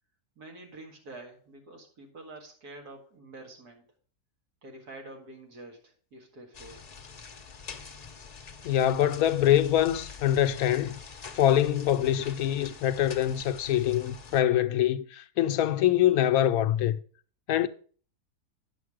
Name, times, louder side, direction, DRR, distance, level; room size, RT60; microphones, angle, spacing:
voice 1, 0.4-3.8 4.6-6.9, right 2 dB, 80° right, 2.5 m, -47 dB
sound 1, 6.5-14.4, left 5 dB, 40° left, 0.6 m, -46 dB
voice 2, 8.6-11.0 11.3-17.0 17.5-17.7, left 11 dB, 75° left, 1.0 m, -24 dB
9.3 x 6.9 x 4.8 m
omnidirectional pair, 1.6 m